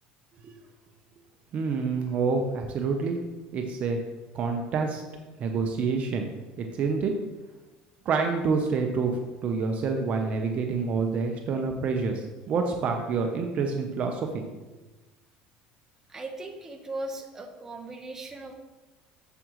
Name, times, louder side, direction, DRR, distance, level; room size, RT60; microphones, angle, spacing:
voice 1, 1.5-3.2 3.5-4.0 4.3-5.0 5.4-6.3 6.6-7.1 8.0-14.4, right 4 dB, 40° right, 3 dB, 0.9 m, -27 dB
voice 2, 16.1-18.5, right 2 dB, 15° right, 2 dB, 1.1 m, -38 dB
8.7 x 7.5 x 3.2 m, 1.2 s
cardioid pair, 130°, 3 cm